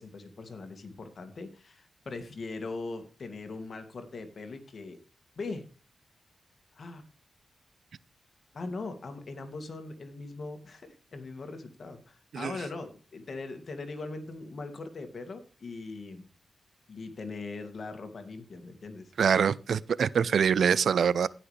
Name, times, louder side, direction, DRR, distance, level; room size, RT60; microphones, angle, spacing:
voice 1, 0.0-5.0 5.4-5.7 6.7-7.0 8.5-16.3 16.9-19.1, left 3 dB, 55° left, 2.1 m, -40 dB
voice 2, 19.2-21.3, right 7 dB, 80° right, 0.4 m, -24 dB
17.5 x 6.0 x 3.3 m
cardioid pair, 85°, 0 cm